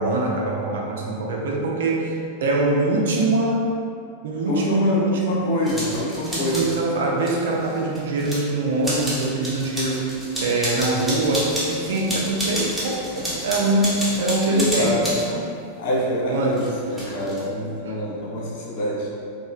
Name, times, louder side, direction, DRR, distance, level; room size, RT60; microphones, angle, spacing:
voice 1, 0.0-3.7 4.2-5.6 6.2-13.0 13.4-15.5 16.3-16.6 17.9-18.0, right 2 dB, 60° right, -1 dB, 0.4 m, -23 dB
voice 2, 4.5-6.7 13.1-13.2 14.5-15.2 15.8-19.1, equal, 50° left, -4 dB, 0.6 m, -26 dB
sound 1, 5.7-6.8 7.2-8.4 8.8-15.3 16.5-17.4, equal, ahead, 0.8 m, -30 dB
2.8 x 2.3 x 2.4 m, 2.4 s
figure-of-eight pair, 90°, 0 cm